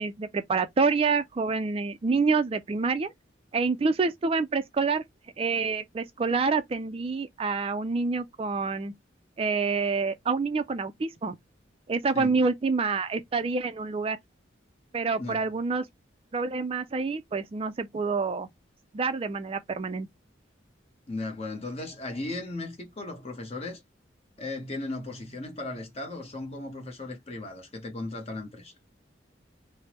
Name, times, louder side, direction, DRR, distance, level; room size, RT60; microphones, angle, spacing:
voice 1, 0.0-3.1 3.5-5.0 5.4-8.9 9.4-11.4 11.9-14.2 14.9-15.9 16.3-18.5 18.9-20.1, right 4 dB, 30° right, 0.3 m, -27 dB
voice 2, 15.2-15.5 21.1-23.8 24.4-28.7, left 2 dB, 35° left, 0.9 m, -36 dB
3.3 x 2.0 x 2.9 m
head